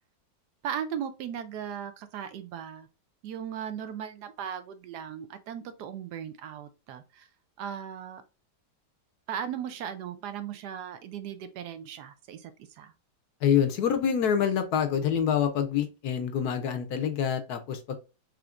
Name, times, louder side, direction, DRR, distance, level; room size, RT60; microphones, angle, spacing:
voice 1, 0.6-2.9 3.2-7.3 7.6-8.2 9.3-12.9, right 8 dB, 75° right, 1.1 m, -37 dB
voice 2, 13.4-18.0, left 8 dB, 70° left, 1.1 m, -26 dB
5.0 x 3.1 x 2.4 m
omnidirectional pair, 1.9 m